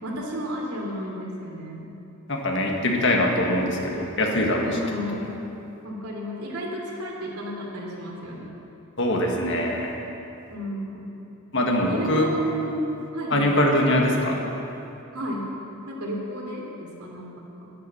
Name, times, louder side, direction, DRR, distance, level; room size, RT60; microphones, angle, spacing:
voice 1, 0.0-1.9 4.7-5.2 5.8-8.5 10.5-11.1 11.7-13.5 15.1-15.4 15.9-17.7, equal, 90° right, -2 dB, 2.9 m, -33 dB
voice 2, 2.3-4.7 9.0-9.9 11.5-12.3 13.3-14.4, left 1 dB, 55° left, 0 dB, 1.8 m, -22 dB
12.0 x 11.0 x 7.1 m, 2.9 s
head